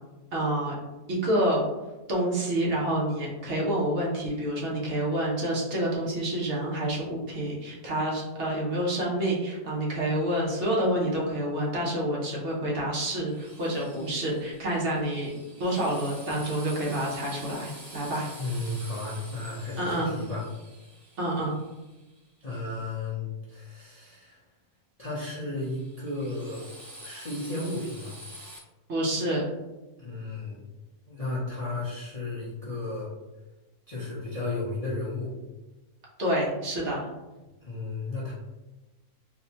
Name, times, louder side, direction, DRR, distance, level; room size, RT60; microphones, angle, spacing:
voice 1, 0.3-0.7 1.1-1.6 2.1-15.3 15.6-18.3 19.8-20.1 21.2-21.5 28.9-29.5 36.2-37.1, right 1 dB, 55° right, -4 dB, 1.0 m, -28 dB
Drill, 13.3-22.2 25.6-28.6, right 1 dB, 75° right, 2.1 m, -47 dB
voice 2, 18.4-20.4 22.4-24.4 25.0-26.7 27.0-28.1 30.0-30.7 31.1-33.1 33.9-35.3 37.6-38.3, left 2 dB, 40° left, -8 dB, 0.5 m, -34 dB
4.1 x 2.1 x 2.8 m, 1.1 s
omnidirectional pair, 1.5 m